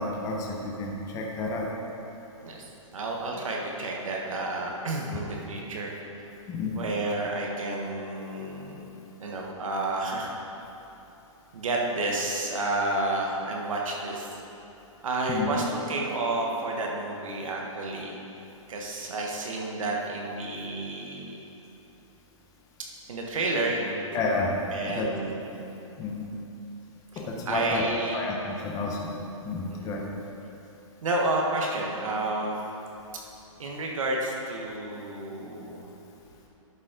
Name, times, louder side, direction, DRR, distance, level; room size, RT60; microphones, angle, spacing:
voice 1, 0.0-1.7 6.5-6.8 15.3-15.5 24.1-24.5 24.9-25.1 26.0-26.2 27.2-27.8 28.1-29.0 29.4-30.0, left 3 dB, 20° left, -2 dB, 0.9 m, -30 dB
voice 2, 2.4-5.9 6.7-8.9 9.2-10.3 11.5-14.4 15.0-18.2 18.7-21.4 23.1-24.3 24.7-25.6 27.5-28.2 29.7-29.9 31.0-32.6 33.6-35.9, right 2 dB, 75° right, -1 dB, 1.3 m, -30 dB
11.5 x 5.2 x 3.7 m, 3.0 s
hypercardioid pair, 145°, 17 cm